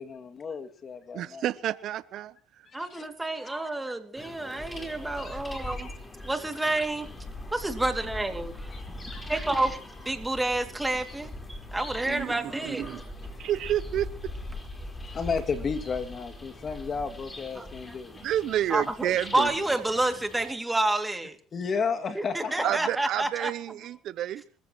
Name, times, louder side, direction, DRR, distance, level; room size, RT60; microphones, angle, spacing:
voice 1, 0.0-1.4 2.8-3.0 5.2-6.0 8.7-8.8 9.1-9.3 13.4-13.5 15.0-18.2 21.5-22.7, left 5 dB, 40° left, 2.3 m, -33 dB
voice 2, 1.1-2.3 9.5-9.6 12.0-13.0 13.4-14.1 18.2-19.5 22.6-24.4, right 12 dB, 60° right, 0.7 m, -30 dB
voice 3, 2.7-5.9 6.2-7.1 7.5-9.8 10.0-12.8 17.6-17.7 18.7-21.4 22.1-23.5, right 2 dB, 10° right, 2.5 m, -29 dB
sound 1, 4.2-20.5, left 1 dB, 20° left, 4.4 m, -41 dB
25.5 x 14.5 x 3.1 m
supercardioid pair, 90°, 0 cm